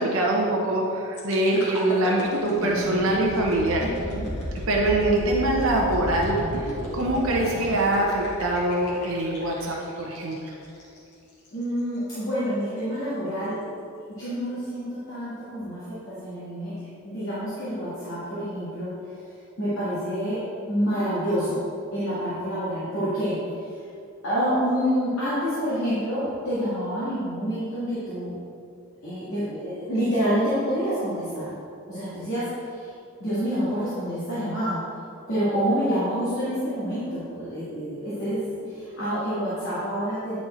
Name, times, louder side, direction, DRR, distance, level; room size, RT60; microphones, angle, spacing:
voice 1, 0.0-3.9 4.5-10.4, right 1 dB, 65° right, -2 dB, 0.9 m, -24 dB
sound 1, 1.1-11.0 11.4-11.6, equal, 85° left, 1.6 m, -33 dB
voice 2, 1.5-1.9 3.8-4.3 11.5-13.6 14.2-16.7 17.0-18.9 19.6-20.4 20.7-21.6 21.9-23.4 24.2-28.3 29.0-31.5 31.9-32.9 33.2-34.8 35.3-40.4, equal, 60° left, -11 dB, 1.9 m, -27 dB
9.1 x 4.3 x 4.3 m, 2.5 s
head